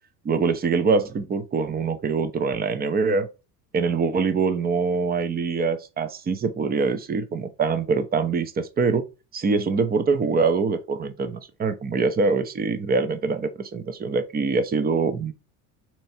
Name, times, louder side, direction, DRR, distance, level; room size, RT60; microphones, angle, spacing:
voice 1, 0.2-3.3 3.7-9.0 9.3-15.3, right 4 dB, 20° right, 0.6 m, -24 dB
3.4 x 3.0 x 4.2 m
supercardioid pair, 100°, 46 cm